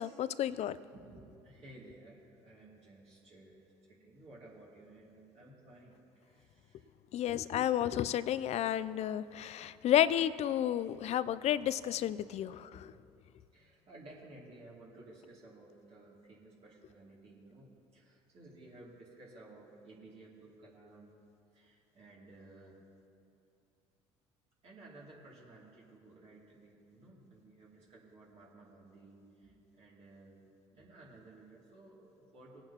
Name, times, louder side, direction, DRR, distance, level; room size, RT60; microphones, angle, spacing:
voice 1, 0.0-0.8 7.1-12.9, left 11 dB, 50° left, 16 dB, 0.4 m, -31 dB
voice 2, 0.9-6.9 12.3-12.4 13.5-21.1 21.5-22.8 24.6-30.5 30.7-32.6, right 2 dB, 50° right, -5 dB, 2.7 m, -56 dB
19.5 x 8.9 x 2.9 m, 2.6 s
hypercardioid pair, 70°, 14 cm